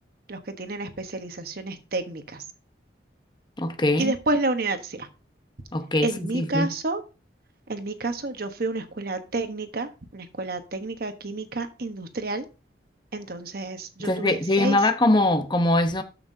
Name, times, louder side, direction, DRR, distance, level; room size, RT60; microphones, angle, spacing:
voice 1, 0.3-2.4 4.0-5.1 6.0-7.0 7.7-12.5 13.1-14.8, right 2 dB, 55° right, 1.1 m, -30 dB
voice 2, 3.6-4.1 5.7-6.7 14.0-16.0, left 2 dB, 25° left, 0.9 m, -22 dB
13.0 x 5.8 x 2.7 m
head